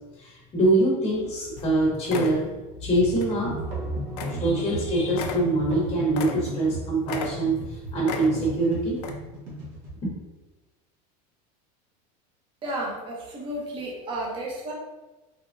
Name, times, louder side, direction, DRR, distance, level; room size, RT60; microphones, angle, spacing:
voice 1, 0.2-2.5 2.8-3.8 4.3-9.0 10.0-10.1, right 2 dB, 25° left, -5 dB, 0.8 m, -24 dB
sound 1, 1.1-1.3 1.6-1.7 2.0-2.4 3.2-3.4 3.7-3.8 4.2-4.4 4.7-4.8 5.1-6.7 7.0-7.7 8.0-8.6 9.0-9.1, left 5 dB, 75° left, 0.5 m, -35 dB
sound 2, 3.4-9.9, right 1 dB, 80° right, 1.3 m, -35 dB
voice 2, 12.6-14.7, right 1 dB, 25° right, -3 dB, 0.7 m, -32 dB
3.5 x 2.8 x 2.5 m, 1.1 s
supercardioid pair, 155°, 20 cm